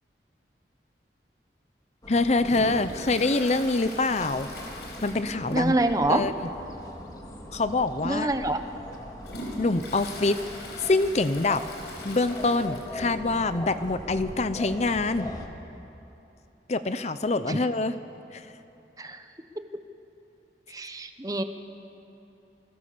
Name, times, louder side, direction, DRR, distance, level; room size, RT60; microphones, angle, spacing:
sound 1, 2.0-15.5, left 1 dB, 20° left, 2.0 m, -41 dB
voice 1, 2.1-4.5 5.0-5.7 6.1-6.5 7.5-8.3 9.6-10.4 10.8-11.6 12.0-15.3 16.7-18.0 18.3-18.5, left 3 dB, 40° left, 12 dB, 0.6 m, -25 dB
Toilet flush, 2.4-5.9 6.1-6.2 6.7-6.8 7.6-7.7 8.3-13.2 13.5-13.6 13.8-13.9 14.9-15.0, left 1 dB, 70° left, 5.0 m, -42 dB
voice 2, 5.5-6.2 8.0-8.6 17.5-17.6 19.0-19.2 19.6-19.7 20.7-21.4, right 1 dB, 20° right, 8 dB, 1.1 m, -26 dB
28.5 x 21.5 x 6.9 m, 3.0 s
head